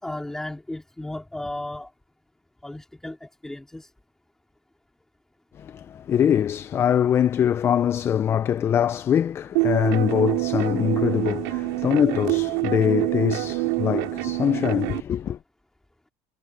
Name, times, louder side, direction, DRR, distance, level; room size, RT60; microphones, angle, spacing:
voice 1, 0.0-1.9 2.6-3.9, left 1 dB, 5° left, 2.6 m, -34 dB
voice 2, 5.6-15.4, left 9 dB, 30° left, 0.5 m, -23 dB
sound 1, 9.5-15.0, right 25 dB, 85° right, 2.9 m, -26 dB
cardioid pair, 135°, 8 cm